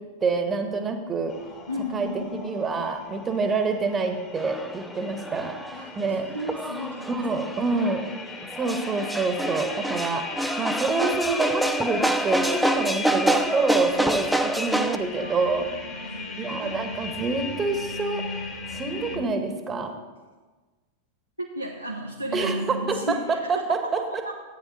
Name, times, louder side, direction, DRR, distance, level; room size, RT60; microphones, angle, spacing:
voice 1, 0.0-1.3 1.9-5.6 5.9-6.3 7.1-8.0 8.4-10.2 10.6-15.7 16.4-18.3 18.7-19.9 22.3-24.3, right 4 dB, 20° right, 6 dB, 1.4 m, -27 dB
sound 1, 1.3-19.2, left 4 dB, 30° left, 2.0 m, -38 dB
voice 2, 1.7-2.7 5.7-5.9 6.3-7.3 7.6-8.2 15.1-16.8 21.4-23.7 24.2-24.3, equal, 90° right, -2 dB, 1.1 m, -34 dB
sound 2, 4.4-15.0, right 1 dB, ahead, 0.6 m, -27 dB
14.5 x 9.1 x 4.2 m, 1.3 s
figure-of-eight pair, 90°, 0 cm